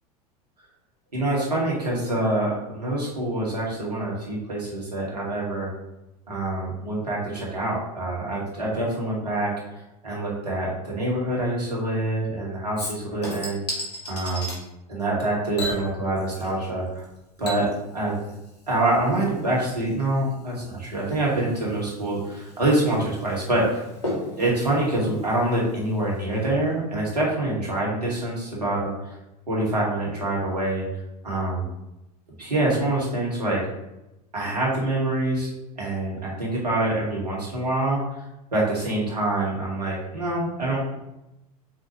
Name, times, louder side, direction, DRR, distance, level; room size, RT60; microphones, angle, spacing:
voice 1, 1.1-5.7 6.3-9.5 10.0-13.6 14.1-14.6 14.9-17.0 17.4-17.7 17.9-18.2 18.7-23.8 24.4-29.2 29.5-30.8 31.2-31.7 32.4-33.6 34.3-35.5 35.8-38.0 38.5-40.8, right 2 dB, 90° right, -4 dB, 2.3 m, -25 dB
Chink clink / Liquid, 12.8-14.6 15.6-16.7 17.0-26.0 26.3-26.4, left 1 dB, 90° left, 2.2 m, -36 dB
7.1 x 4.1 x 3.3 m, 0.92 s
hypercardioid pair, 85°, 20 cm